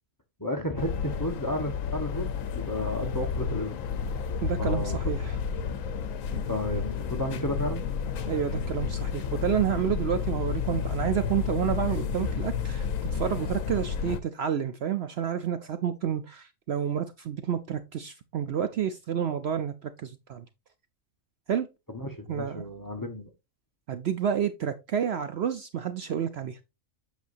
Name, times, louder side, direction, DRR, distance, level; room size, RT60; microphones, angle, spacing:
voice 1, 0.4-3.8 4.6-5.0 6.3-7.9 21.9-23.3, left 1 dB, 15° left, 1.0 m, -33 dB
sound 1, 0.8-14.2, left 6 dB, 75° left, 1.1 m, -31 dB
voice 2, 4.4-5.4 8.3-20.5 21.5-21.7 22.3-22.6 23.9-26.6, right 9 dB, 60° right, 0.8 m, -29 dB
8.2 x 6.3 x 2.5 m
omnidirectional pair, 1.4 m